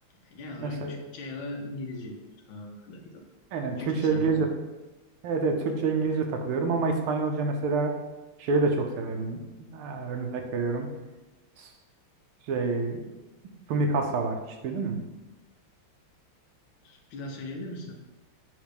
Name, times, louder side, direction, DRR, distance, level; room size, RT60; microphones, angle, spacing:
voice 1, 0.2-2.2 2.5-3.2 3.8-4.5 16.8-18.0, left 1 dB, 70° left, 1 dB, 1.6 m, -39 dB
voice 2, 3.5-4.5 5.2-7.9 8.4-10.9 11.6-11.7 12.5-13.0 13.7-15.0, right 4 dB, 80° right, 4 dB, 1.7 m, -27 dB
6.9 x 3.2 x 5.2 m, 1.1 s
omnidirectional pair, 2.4 m